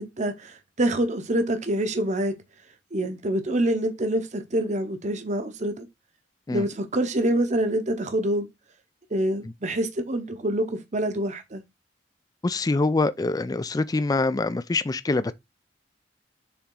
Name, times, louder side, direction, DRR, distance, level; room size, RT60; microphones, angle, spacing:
voice 1, 0.0-2.3 2.9-5.9 6.5-8.5 9.1-11.6, right 1 dB, 40° right, 0.8 m, -26 dB
voice 2, 12.4-15.3, left 3 dB, 20° left, 0.3 m, -24 dB
7.0 x 3.6 x 3.7 m
head